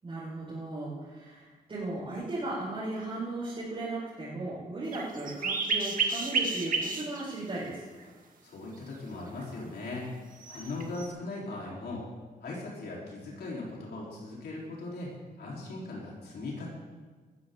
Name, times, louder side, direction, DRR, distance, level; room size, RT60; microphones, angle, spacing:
voice 1, 0.0-7.8, right 2 dB, 35° right, -10 dB, 5.4 m, -36 dB
sound 1, 4.9-7.3 8.0-8.1 10.4-11.1, right 4 dB, 55° right, 1.7 m, -30 dB
voice 2, 8.4-10.1 10.5-12.0 12.4-16.7, left 2 dB, 90° left, -4 dB, 4.1 m, -39 dB
19.5 x 14.5 x 3.9 m, 1.4 s
wide cardioid pair, 170°, 16 cm